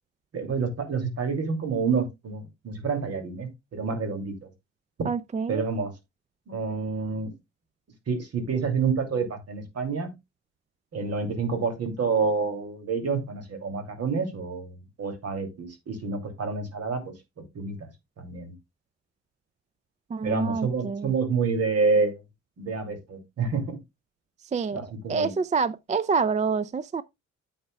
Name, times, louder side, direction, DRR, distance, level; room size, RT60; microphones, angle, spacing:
voice 1, 0.3-4.4 5.0-5.1 5.5-5.9 6.5-7.3 8.1-10.1 10.9-17.1 17.5-17.9 18.2-18.5 20.2-22.2 22.6-23.8 24.7-25.3, right 4 dB, 55° right, 2.8 m, -28 dB
voice 2, 5.0-5.6 20.1-21.1 24.5-27.0, right 5 dB, 25° right, 0.3 m, -27 dB
10.5 x 7.9 x 2.3 m
cardioid pair, 100°, 29 cm